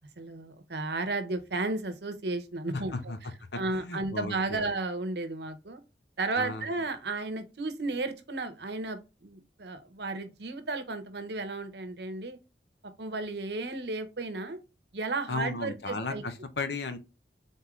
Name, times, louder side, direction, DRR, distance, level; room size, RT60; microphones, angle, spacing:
voice 1, 0.2-2.9 3.6-5.8 6.2-12.4 13.0-14.6 14.9-16.2, right 3 dB, 70° right, 0.9 m, -33 dB
voice 2, 2.7-3.2 3.5-4.7 6.4-6.7 15.3-17.0, left 3 dB, 70° left, 0.8 m, -35 dB
4.1 x 3.7 x 3.1 m
head